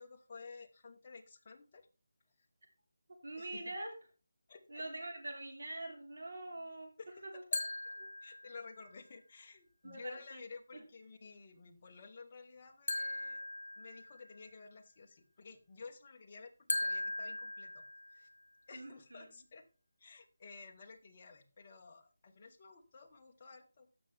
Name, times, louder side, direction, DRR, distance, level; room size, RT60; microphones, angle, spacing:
voice 1, 0.0-1.8 3.4-3.7 4.5-4.8 7.0-7.4 8.2-13.4 13.8-17.8 18.1-18.3 18.7-19.6 20.0-23.9, left 4 dB, 25° left, 1 dB, 1.0 m, -53 dB
voice 2, 3.2-3.9 4.7-6.9 7.3-7.4 9.8-10.4 18.7-19.3, right 1 dB, 60° right, 3 dB, 3.2 m, -44 dB
sound 1, 7.5-8.8 12.9-14.4 16.7-18.4, left 2 dB, 70° left, 1.5 m, -39 dB
15.0 x 5.8 x 3.4 m, 0.31 s
figure-of-eight pair, 180°, 0 cm